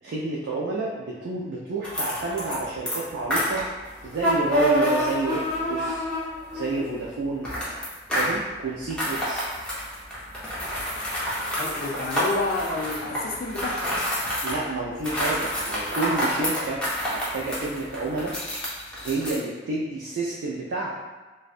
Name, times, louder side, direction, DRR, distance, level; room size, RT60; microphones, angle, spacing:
voice 1, 0.0-3.6 4.0-6.0 6.5-7.5 8.1-9.5 14.4-16.8 17.1-18.3 19.0-20.9, right 3 dB, 75° right, -4 dB, 0.4 m, -30 dB
sound 1, 1.8-2.6 2.9-6.9 7.4-8.4 8.9-14.6 15.0-19.3, equal, 5° left, 0.6 m, -28 dB
voice 2, 11.5-14.0, left 3 dB, 55° left, 0 dB, 0.4 m, -30 dB
2.6 x 2.1 x 2.4 m, 1.3 s
head